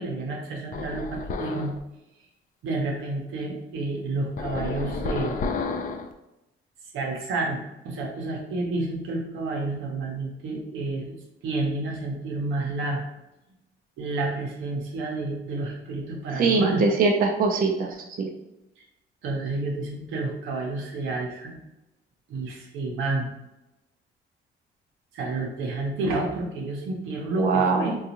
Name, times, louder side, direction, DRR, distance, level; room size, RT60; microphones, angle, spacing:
voice 1, 0.0-1.8 2.6-5.4 6.9-7.6 7.8-11.1 11.4-13.0 14.0-16.8 19.2-21.6 22.3-23.3 25.1-28.0, right 2 dB, 85° right, 0 dB, 0.8 m, -30 dB
sound 1, 0.7-1.8 4.4-6.1, left 4 dB, 40° left, 0.4 m, -31 dB
voice 2, 16.4-18.3 27.4-27.9, right 4 dB, 45° right, 1 dB, 0.5 m, -22 dB
3.7 x 2.3 x 2.9 m, 0.93 s
cardioid pair, 90°, 20 cm